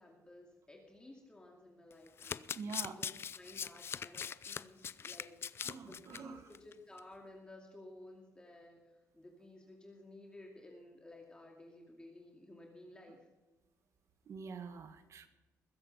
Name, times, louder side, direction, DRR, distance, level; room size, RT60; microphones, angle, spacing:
voice 1, 0.0-2.5 2.8-13.3, left 1 dB, 15° left, 0 dB, 2.4 m, -55 dB
Domestic sounds home sounds, 1.9-6.2 6.5-6.7 7.0-7.1, left 7 dB, 45° left, 0.4 m, -41 dB
voice 2, 2.5-3.0 5.6-6.5 14.3-15.3, right 5 dB, 55° right, 9 dB, 1.5 m, -46 dB
21.0 x 8.0 x 5.6 m, 1.1 s
cardioid pair, 105°, 6 cm